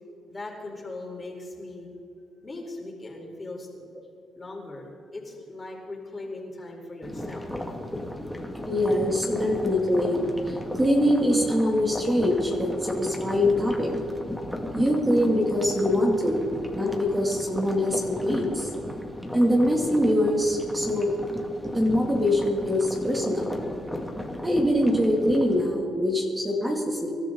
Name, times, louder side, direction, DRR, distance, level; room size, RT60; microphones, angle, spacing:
voice 1, 0.3-1.9 2.4-3.8 4.4-7.8, left 2 dB, 25° left, -1 dB, 4.3 m, -39 dB
sound 1, 7.0-25.7, left 1 dB, 5° left, 2.3 m, -35 dB
voice 2, 8.7-10.2 10.5-13.9 14.7-16.4 16.7-18.7 19.3-21.1 21.7-23.4 24.4-27.1, left 1 dB, 15° right, -1 dB, 2.8 m, -23 dB
26.0 x 12.5 x 4.0 m, 2.6 s
cardioid pair, 90°, 0 cm